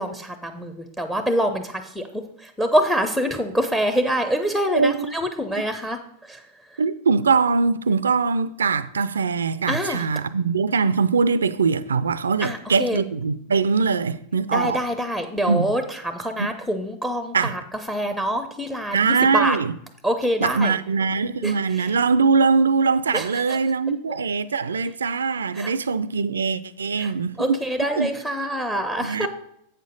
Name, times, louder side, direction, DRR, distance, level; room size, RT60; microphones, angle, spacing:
voice 1, 0.0-6.0 6.3-6.4 9.7-10.1 12.4-13.0 14.5-17.6 17.9-19.6 20.0-20.8 21.4-21.9 23.1-23.6 25.5-25.7 27.0-27.1 27.4-29.3, equal, 5° left, 0.6 m, -25 dB
voice 2, 4.7-5.1 6.8-14.8 15.5-15.7 16.4-16.5 17.3-17.5 18.9-19.7 20.4-27.6 28.0-28.1 29.0-29.3, right 5 dB, 70° right, 0.4 m, -22 dB
8.0 x 6.6 x 3.9 m
figure-of-eight pair, 90°, 0 cm